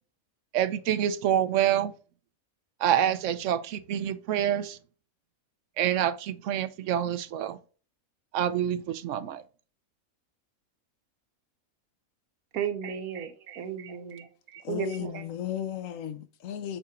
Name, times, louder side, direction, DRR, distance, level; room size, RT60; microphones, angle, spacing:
voice 1, 0.5-1.9 2.8-4.8 5.8-7.6 8.3-9.4, right 10 dB, 65° right, 0.9 m, -27 dB
voice 2, 12.5-15.2, right 8 dB, 85° right, 1.4 m, -35 dB
voice 3, 14.6-16.8, left 9 dB, 70° left, 1.1 m, -34 dB
6.7 x 4.2 x 3.7 m
omnidirectional pair, 1.5 m